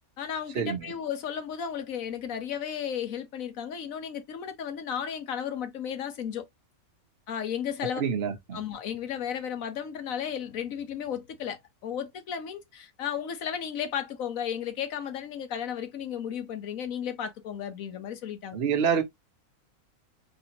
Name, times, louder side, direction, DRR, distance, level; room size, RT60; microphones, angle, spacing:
voice 1, 0.2-6.4 7.3-8.0 8.5-18.6, left 8 dB, 65° left, 1.3 m, -34 dB
voice 2, 8.0-8.6 18.5-19.0, right 7 dB, 50° right, 1.1 m, -27 dB
4.2 x 3.4 x 2.8 m
omnidirectional pair, 1.6 m